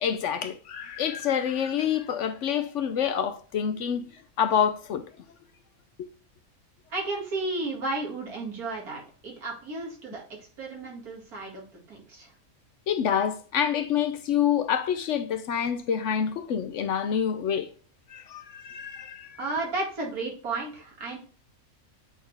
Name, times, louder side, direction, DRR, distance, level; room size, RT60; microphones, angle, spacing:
voice 1, 0.0-4.1 4.4-5.0 6.0-6.1 12.9-17.7 18.1-19.4, left 8 dB, 65° left, 0.9 m, -27 dB
voice 2, 6.9-12.3 19.4-21.2, right 2 dB, 85° right, 2.5 m, -33 dB
7.9 x 4.3 x 3.3 m
omnidirectional pair, 1.5 m